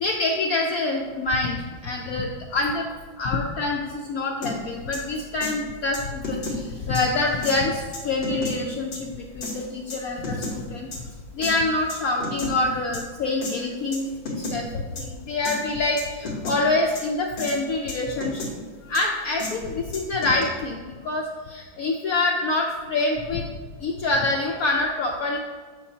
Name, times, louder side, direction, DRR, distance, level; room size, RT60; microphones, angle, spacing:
voice 1, 0.0-2.9 3.2-10.9 11.3-18.4 18.9-23.4 23.8-25.4, left 2 dB, 85° left, 0 dB, 0.7 m, -26 dB
sound 1, 4.4-4.5 4.9-5.0 5.4-5.5 5.9-6.6 7.0-7.1 7.4-7.6 7.9-8.5 8.9-9.0 9.4-9.5 9.9-10.6 10.9-11.0 11.4-11.5 11.9-12.5 12.9-13.0 13.4-13.5 13.9-14.0 14.3-14.6 15.0-15.1 15.5-15.6 16.0-16.6 17.0-17.1 17.4-17.6 17.9-18.5 18.9-19.0 19.4-19.5 19.9-20.4, left 2 dB, 65° left, 2.1 m, -31 dB
7.0 x 6.9 x 2.8 m, 1.5 s
omnidirectional pair, 2.2 m